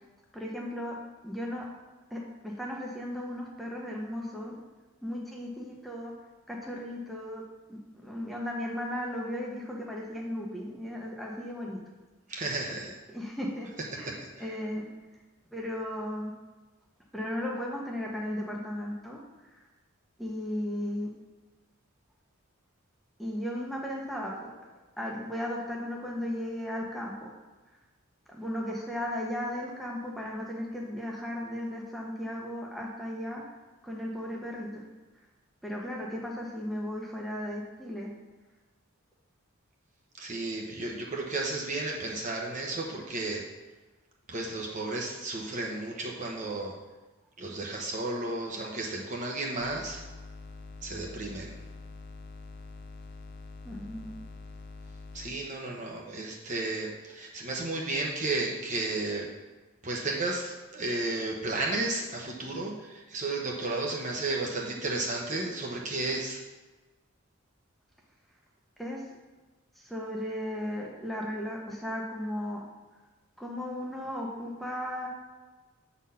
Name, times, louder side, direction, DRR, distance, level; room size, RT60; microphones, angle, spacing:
voice 1, 0.3-1.0 1.2-1.7 2.1-4.6 5.0-6.1 6.5-7.4 7.7-11.8 13.1-13.7 13.9-14.9 15.5-16.3 17.1-19.2 19.5-19.6 20.2-21.1 23.2-24.5 25.0-27.3 28.3-33.4 33.8-34.8 35.6-38.1 53.6-54.1 68.8-69.0 69.8-72.6 73.4-75.1, left 1 dB, ahead, -3 dB, 1.0 m, -35 dB
voice 2, 12.3-12.9 14.0-14.4 40.2-43.4 44.3-46.7 47.4-50.0 50.8-51.6 55.1-59.3 59.8-66.4, right 2 dB, 35° right, -1 dB, 1.0 m, -33 dB
sound 1, 49.6-55.3, left 3 dB, 50° left, 0.6 m, -45 dB
8.0 x 4.2 x 5.6 m, 1.2 s
head